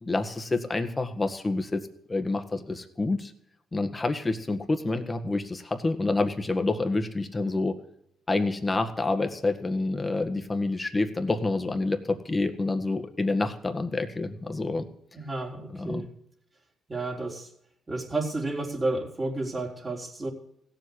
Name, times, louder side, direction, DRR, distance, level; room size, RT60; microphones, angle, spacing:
voice 1, 0.0-1.8 2.1-3.3 3.7-7.8 8.3-14.8 15.7-16.0, left 2 dB, 20° left, 7 dB, 1.8 m, -28 dB
voice 2, 15.1-16.1 16.9-17.5 17.9-20.3, right 2 dB, 25° right, 2 dB, 3.7 m, -31 dB
16.5 x 7.8 x 8.5 m, 0.74 s
cardioid pair, 90°, 0 cm